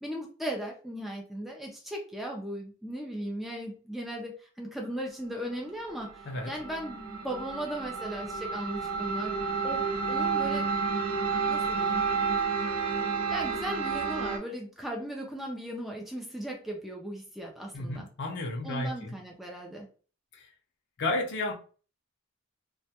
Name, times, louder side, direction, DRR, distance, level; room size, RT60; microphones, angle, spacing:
voice 1, 0.0-9.3 9.6-10.6 11.5-12.0 13.3-18.1 18.6-19.9, right 1 dB, ahead, -1 dB, 0.3 m, -37 dB
sound 1, 5.9-14.4, right 5 dB, 80° right, 0.5 m, -30 dB
voice 2, 17.7-19.1 20.3-20.5 21.0-21.5, left 2 dB, 55° left, 1 dB, 0.5 m, -32 dB
2.1 x 2.1 x 2.7 m, 0.38 s
head